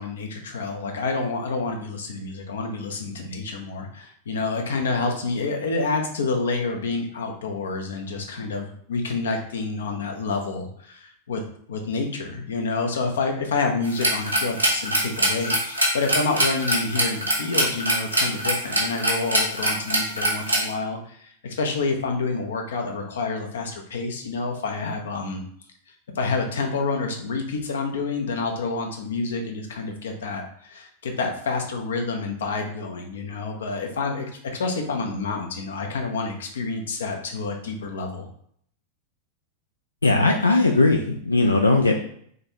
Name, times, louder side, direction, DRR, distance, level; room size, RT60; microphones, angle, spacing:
voice 1, 0.0-11.4 11.7-25.4 26.1-38.3, left 3 dB, 65° left, 3 dB, 0.7 m, -28 dB
sound 1, 13.8-20.6, right 1 dB, 85° right, 0.9 m, -23 dB
voice 2, 40.0-42.0, left 2 dB, 80° left, 2 dB, 0.3 m, -19 dB
3.8 x 3.4 x 2.8 m, 0.64 s
figure-of-eight pair, 90°, 0 cm